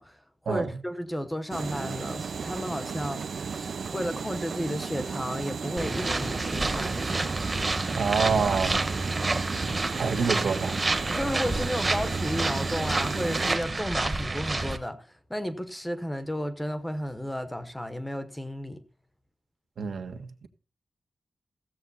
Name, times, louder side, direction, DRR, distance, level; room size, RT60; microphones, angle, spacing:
voice 1, 0.0-3.2 3.5-6.9 11.1-18.8, equal, 5° left, 0.9 m, -33 dB
sound 1, 1.5-13.6, right 5 dB, 55° right, 0.6 m, -35 dB
sound 2, 5.8-14.8, right 2 dB, 20° right, 1.1 m, -29 dB
voice 2, 7.9-8.9 10.0-10.8 19.8-20.5, right 5 dB, 75° right, 1.5 m, -27 dB
15.5 x 7.8 x 4.1 m
wide cardioid pair, 180°, 0 cm